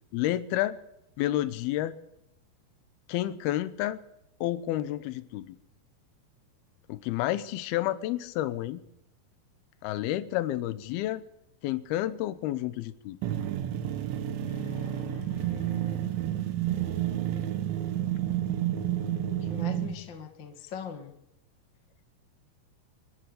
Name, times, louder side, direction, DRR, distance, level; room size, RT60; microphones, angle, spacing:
voice 1, 0.1-0.8 1.2-2.0 3.1-4.0 4.4-5.6 6.9-8.8 9.8-11.2 11.6-13.2, left 14 dB, 75° left, 13 dB, 2.4 m, -30 dB
sound 1, 13.2-20.0, right 11 dB, 85° right, 4.0 m, -30 dB
voice 2, 14.5-16.0 19.5-21.1, left 7 dB, 40° left, 5 dB, 1.8 m, -42 dB
27.0 x 12.0 x 8.3 m, 0.83 s
omnidirectional pair, 5.3 m